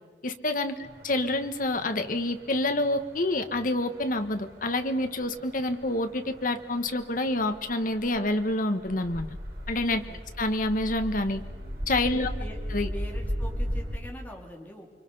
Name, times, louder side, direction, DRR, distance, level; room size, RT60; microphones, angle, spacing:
voice 1, 0.2-0.8 1.0-9.3 9.7-10.0 10.4-11.4 11.9-12.3 12.7-12.9, left 2 dB, 50° left, 8 dB, 1.4 m, -27 dB
sound 1, 0.8-14.0, equal, 55° right, 4.9 m, -38 dB
voice 2, 12.1-12.6 12.9-15.0, equal, 10° left, -1 dB, 3.5 m, -43 dB
29.5 x 24.0 x 5.6 m, 1.4 s
head